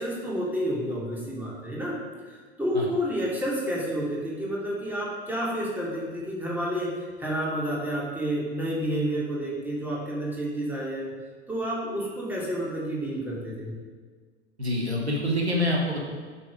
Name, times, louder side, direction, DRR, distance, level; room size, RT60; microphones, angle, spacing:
voice 1, 0.0-2.0 2.3-6.9 7.2-11.1 11.5-13.7, equal, 5° right, -5 dB, 2.8 m, -30 dB
voice 2, 14.6-16.0, left 1 dB, 90° right, -1 dB, 1.4 m, -26 dB
8.2 x 6.0 x 5.0 m, 1.5 s
figure-of-eight pair, 80°, 32 cm